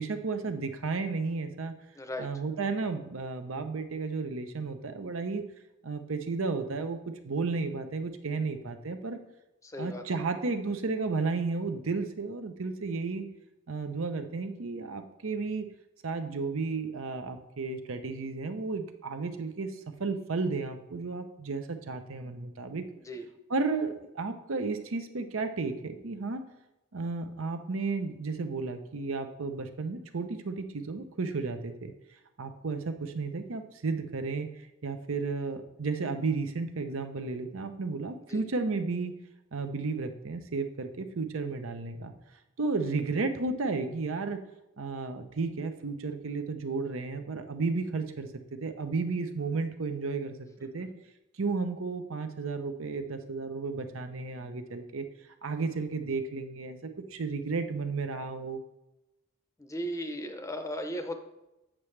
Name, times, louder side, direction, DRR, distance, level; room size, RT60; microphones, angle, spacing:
voice 1, 0.0-1.7 2.2-5.4 5.8-7.0 7.2-9.2 9.8-13.3 13.7-15.7 16.0-22.8 23.5-26.4 26.9-31.9 32.4-39.2 39.5-42.1 42.6-44.4 44.8-50.9 51.4-55.1 55.4-58.6, right 4 dB, 70° right, 8 dB, 0.7 m, -33 dB
voice 2, 2.0-2.3 9.7-10.0 23.0-23.2 38.3-38.4 50.8-50.9 59.6-61.1, equal, 15° left, 6 dB, 0.7 m, -36 dB
8.3 x 7.5 x 3.3 m, 0.94 s
head